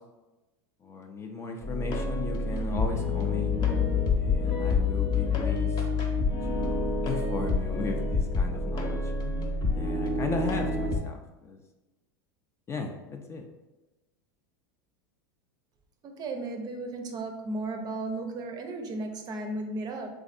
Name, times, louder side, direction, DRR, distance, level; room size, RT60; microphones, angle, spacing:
voice 1, 0.8-3.5 4.1-5.8 6.4-9.1 9.7-11.6 12.7-13.4, left 4 dB, 20° left, 3 dB, 0.4 m, -36 dB
sound 1, 1.6-11.0, left 3 dB, 35° left, 0.8 m, -28 dB
sound 2, 3.5-8.3, left 10 dB, 85° left, 0.9 m, -32 dB
voice 2, 16.0-20.1, right 2 dB, 35° right, 4 dB, 0.5 m, -35 dB
3.5 x 3.1 x 2.5 m, 1.1 s
hypercardioid pair, 105°, 12 cm